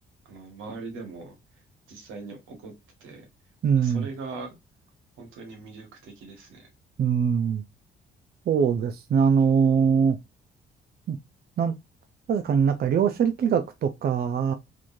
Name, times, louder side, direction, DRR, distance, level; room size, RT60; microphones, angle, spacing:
voice 1, 0.3-1.3 1.9-2.7 3.0-3.3 3.8-4.6 5.2-6.7, right 3 dB, 90° right, 1.7 m, -40 dB
voice 2, 3.6-4.1 7.0-7.6 8.5-10.2 11.1-11.2 11.6-11.7 12.3-14.5, right 7 dB, 50° right, 0.6 m, -22 dB
4.0 x 3.2 x 2.6 m
cardioid pair, 90°, 20 cm